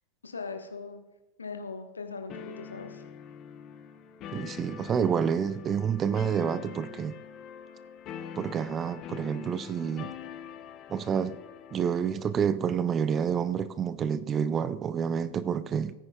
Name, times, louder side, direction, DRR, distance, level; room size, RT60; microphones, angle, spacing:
voice 1, 0.2-1.0 1.4-3.0, left 4 dB, 75° left, 1.2 m, -39 dB
sound 1, 2.3-12.4, left 8 dB, 35° left, 0.9 m, -44 dB
voice 2, 4.3-7.2 8.4-10.1 10.9-11.4 11.7-15.9, right 7 dB, 25° right, 0.5 m, -28 dB
17.5 x 9.5 x 2.3 m
figure-of-eight pair, 90°, 0 cm